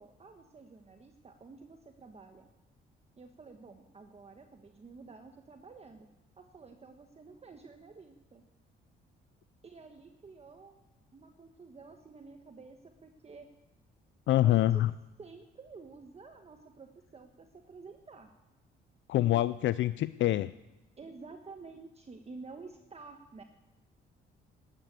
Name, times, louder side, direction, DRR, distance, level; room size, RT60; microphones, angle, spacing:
voice 1, 0.0-2.5 3.2-6.1 6.4-8.4 9.6-10.8 11.1-13.5 14.4-14.8 15.2-18.3 19.2-19.3 21.0-23.4, right 4 dB, 30° right, 5 dB, 1.3 m, -51 dB
voice 2, 14.3-14.9 19.1-20.5, left 14 dB, 70° left, 15 dB, 0.4 m, -26 dB
12.0 x 11.5 x 8.1 m, 1.0 s
cardioid pair, 90°, 20 cm